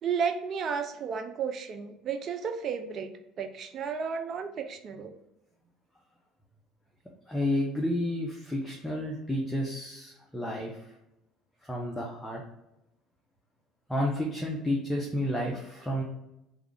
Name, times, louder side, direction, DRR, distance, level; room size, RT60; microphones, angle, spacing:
voice 1, 0.0-3.1 3.4-5.1, right 6 dB, 50° right, 7 dB, 0.4 m, -33 dB
voice 2, 7.3-10.7 11.6-12.4 13.9-16.0, left 1 dB, 5° left, -2 dB, 0.8 m, -31 dB
3.4 x 2.5 x 3.3 m, 0.88 s
hypercardioid pair, 75°, 0 cm